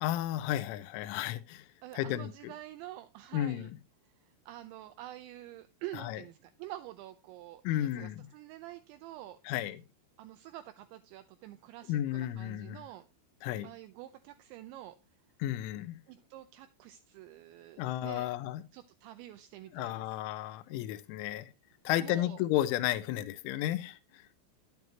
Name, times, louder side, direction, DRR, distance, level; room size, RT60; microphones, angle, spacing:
voice 1, 0.0-1.7 1.9-2.5 3.3-3.8 5.9-6.2 7.6-8.3 9.5-9.8 11.9-12.9 13.4-13.7 15.4-16.0 17.8-18.6 19.7-21.5 21.8-24.2, left 13 dB, 85° left, 3.1 m, -33 dB
voice 2, 1.8-3.7 4.2-9.4 10.2-13.1 13.6-15.0 16.1-18.3 18.7-20.1 21.9-22.4, right 14 dB, 85° right, 2.7 m, -47 dB
10.5 x 9.4 x 2.9 m
omnidirectional pair, 5.8 m